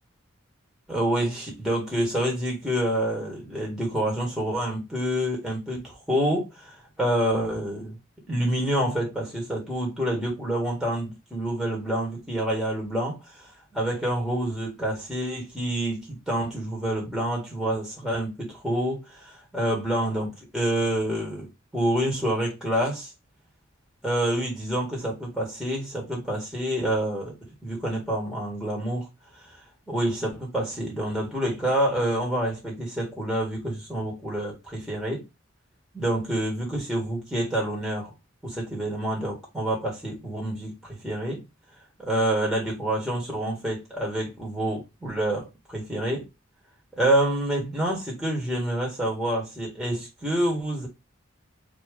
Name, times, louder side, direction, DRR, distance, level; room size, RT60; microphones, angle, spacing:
voice 1, 0.9-8.0 8.3-13.5 13.7-23.1 24.0-27.3 27.6-29.1 29.4-29.5 29.9-35.2 35.9-38.1 38.4-41.4 42.0-46.3 47.0-50.9, right 1 dB, ahead, 1.8 m, -27 dB
4.2 x 3.1 x 3.7 m
head